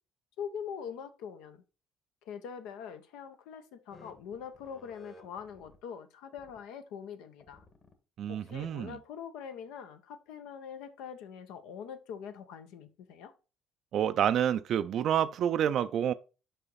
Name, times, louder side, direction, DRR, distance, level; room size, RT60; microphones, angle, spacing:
voice 1, 0.4-1.6 2.3-7.6 8.3-13.3, left 7 dB, 85° left, 0.7 m, -43 dB
sound 1, 3.9-5.8 6.3-6.6 7.4-7.9 8.5-9.0, left 1 dB, 40° left, 1.4 m, -55 dB
voice 2, 8.2-9.0 13.9-16.1, right 9 dB, 60° right, 0.3 m, -28 dB
5.6 x 4.9 x 4.0 m
supercardioid pair, 90°, 0 cm